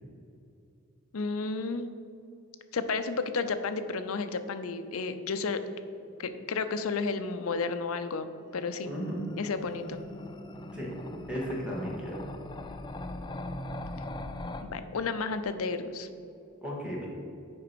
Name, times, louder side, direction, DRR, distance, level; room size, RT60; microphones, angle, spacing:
voice 1, 1.1-1.9 2.7-5.6 6.2-8.9 9.4-10.0 14.6-16.1, left 4 dB, 70° left, 10 dB, 0.6 m, -32 dB
sound 1, 8.4-14.6, left 1 dB, 20° left, 0.4 m, -41 dB
voice 2, 8.9-9.2 10.7-10.9 11.3-12.2 16.6-17.1, equal, 5° right, -5 dB, 1.9 m, -34 dB
7.8 x 5.1 x 5.9 m, 2.7 s
head